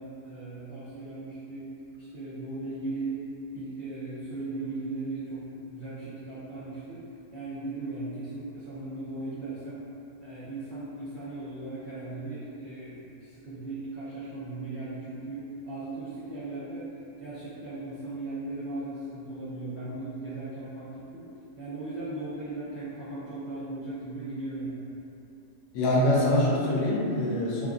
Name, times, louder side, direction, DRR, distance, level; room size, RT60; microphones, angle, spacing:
voice 1, 0.0-1.7 2.0-3.2 3.5-9.8 10.2-16.9 17.2-21.2 21.6-24.9, right 2 dB, 60° right, -15 dB, 0.5 m, -37 dB
voice 2, 25.7-27.7, left 1 dB, 80° left, -5 dB, 1.2 m, -24 dB
3.0 x 2.4 x 2.4 m, 2.8 s
omnidirectional pair, 1.7 m